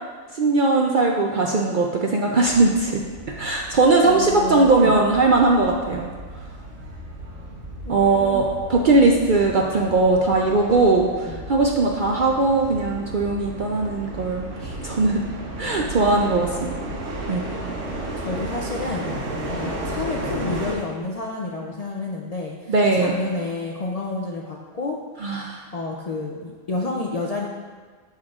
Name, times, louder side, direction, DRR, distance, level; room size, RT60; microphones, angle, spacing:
voice 1, 0.3-3.0 3.4-6.1 7.9-15.2 15.6-16.8 17.3-17.5 22.7-23.2 25.2-25.6, right 3 dB, 60° right, 0 dB, 0.5 m, -19 dB
sound 1, 2.4-20.8, right 1 dB, 75° right, 1.4 m, -34 dB
voice 2, 4.0-5.0 7.8-8.5 11.2-11.4 18.2-19.1 19.5-25.0 25.7-27.5, left 2 dB, 55° left, -2 dB, 0.4 m, -30 dB
12.5 x 4.4 x 2.4 m, 1.5 s
omnidirectional pair, 1.3 m